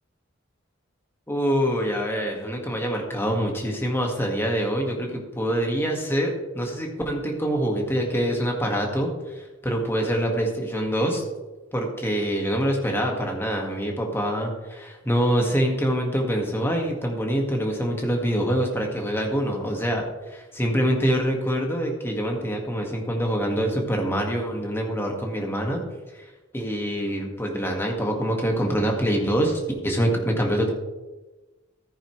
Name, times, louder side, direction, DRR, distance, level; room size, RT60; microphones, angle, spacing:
voice 1, 1.3-11.2 11.7-25.8 26.1-26.3 26.5-30.7, equal, 10° left, 1 dB, 1.7 m, -25 dB
14.5 x 9.6 x 3.2 m, 1.2 s
head